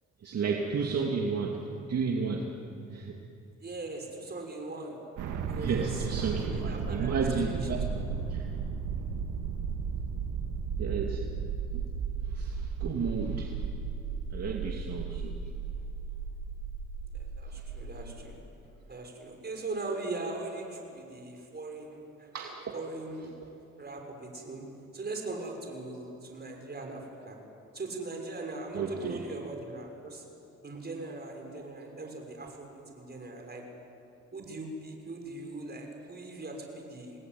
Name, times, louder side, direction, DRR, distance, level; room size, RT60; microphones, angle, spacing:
voice 1, 0.2-1.6 1.9-2.5 2.9-3.2 5.6-7.8 8.3-8.5 10.8-11.2 12.3-13.6 14.3-15.3 22.3-22.5 23.1-23.3 28.7-29.2, right 5 dB, 55° right, 0 dB, 2.6 m, -32 dB
voice 2, 3.6-5.0 5.5-7.2 7.9-8.2 17.1-18.4 18.9-22.4 22.7-23.3 23.8-24.7 24.9-27.4 27.7-30.2 30.6-33.7 34.3-37.2, right 2 dB, 35° right, 2 dB, 6.4 m, -40 dB
sound 1, 5.2-18.2, right 6 dB, 85° right, 2.2 m, -35 dB
28.5 x 20.0 x 9.5 m, 2.7 s
cardioid pair, 90°, 30 cm